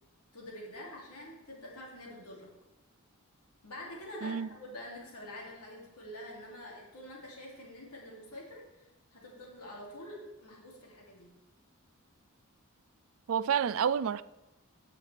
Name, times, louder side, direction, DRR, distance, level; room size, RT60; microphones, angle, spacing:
voice 1, 0.3-2.5 3.6-11.3, left 1 dB, 90° left, 2.9 m, -46 dB
voice 2, 13.3-14.2, right 7 dB, 65° right, 0.3 m, -29 dB
16.5 x 5.7 x 3.4 m
head